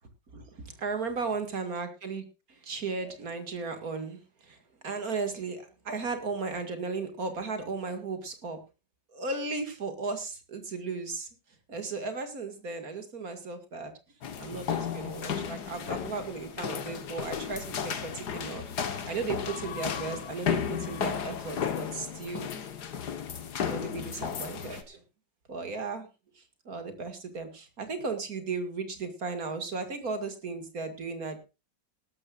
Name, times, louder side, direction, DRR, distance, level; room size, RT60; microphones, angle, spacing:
voice 1, 0.3-8.6 9.1-11.3 11.7-13.9 14.4-22.5 23.6-25.0 25.5-26.1 26.3-31.4, right 4 dB, 50° right, 7 dB, 2.6 m, -36 dB
sound 1, 14.2-24.8, left 7 dB, 65° left, 1.8 m, -34 dB
18.0 x 13.0 x 2.5 m, 0.29 s
omnidirectional pair, 2.0 m